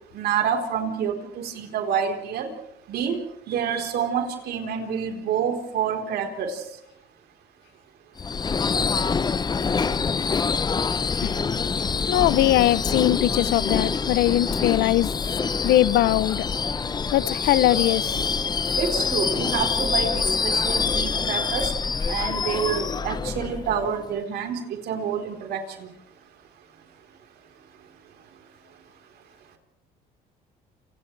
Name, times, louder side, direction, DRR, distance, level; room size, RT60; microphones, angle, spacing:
voice 1, 0.1-2.5 2.9-3.2 3.5-6.6 18.8-21.7 22.1-25.9, right 7 dB, 70° right, 4.0 m, -28 dB
Subway metro underground / Screech, 8.2-24.1, left 5 dB, 25° left, 0.7 m, -25 dB
voice 2, 12.1-15.1 15.6-16.5 17.1-18.4, left 14 dB, 75° left, 0.7 m, -21 dB
29.0 x 28.5 x 3.3 m
cardioid pair, 110°, 17 cm